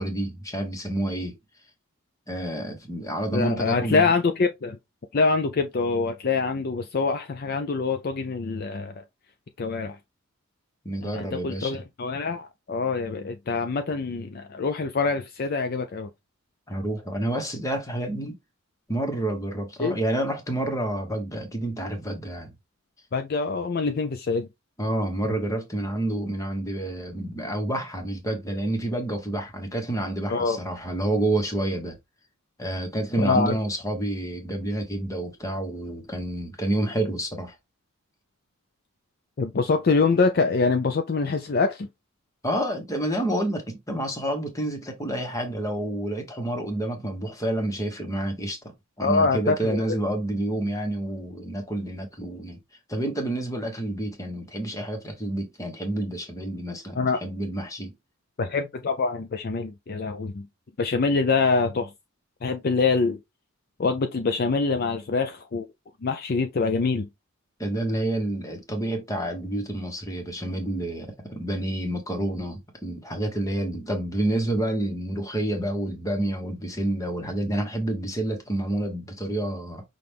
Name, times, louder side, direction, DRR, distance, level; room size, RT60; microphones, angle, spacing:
voice 1, 0.0-1.3 2.3-4.1 10.8-11.7 16.7-18.3 18.9-22.5 24.8-32.0 32.6-37.5 42.4-48.6 49.0-52.6 52.9-57.9 67.6-79.8, right 1 dB, 15° left, 1.2 m, -29 dB
voice 2, 3.3-4.8 5.1-9.0 9.6-10.0 11.0-16.1 19.8-20.0 23.1-24.5 30.3-30.6 33.2-33.5 39.4-41.9 49.0-49.8 57.0-57.2 58.4-60.5 60.8-61.9 62.4-63.2 63.8-65.7 66.0-67.1, left 4 dB, 45° left, 0.4 m, -25 dB
5.8 x 2.5 x 3.4 m
head